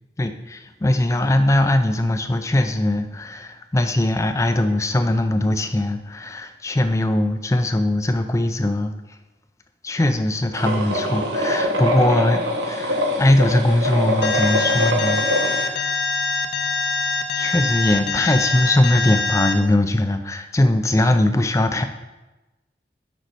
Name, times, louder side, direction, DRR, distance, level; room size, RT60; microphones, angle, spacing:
voice 1, 0.2-8.9 9.8-16.1 17.3-21.8, left 1 dB, 15° left, 8 dB, 0.4 m, -20 dB
sound 1, 10.5-15.7, equal, 85° right, 1.1 m, -23 dB
Alarm, 14.2-19.5, left 4 dB, 75° left, 0.6 m, -24 dB
6.5 x 5.4 x 4.6 m, 1.1 s
head